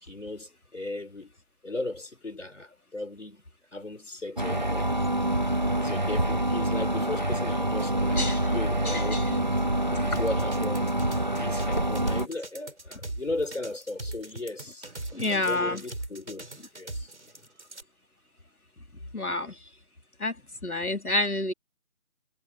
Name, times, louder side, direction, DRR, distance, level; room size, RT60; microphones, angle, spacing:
voice 1, 0.0-1.3 1.6-3.4 3.7-4.9 5.8-9.2 9.8-10.9 11.3-14.9 15.3-16.5 16.7-17.1, left 2 dB, 55° left, 4.0 m, -36 dB
sound 1, 4.4-12.3, right 1 dB, 30° right, 2.0 m, -26 dB
voice 2, 8.2-8.5 8.8-9.4 15.1-15.8 19.1-19.7 20.2-20.4 20.6-21.5, left 2 dB, 85° left, 3.8 m, -29 dB
sound 2, 10.2-17.8, right 2 dB, 50° right, 4.7 m, -39 dB
figure-of-eight pair, 175°, 43 cm